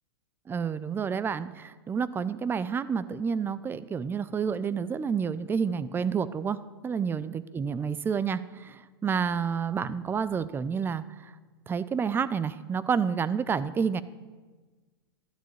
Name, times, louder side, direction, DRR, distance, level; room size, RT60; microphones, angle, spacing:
voice 1, 0.5-11.3 11.7-14.0, right 6 dB, 15° right, 16 dB, 0.6 m, -29 dB
25.0 x 12.0 x 3.3 m, 1.4 s
hypercardioid pair, 105°, 14 cm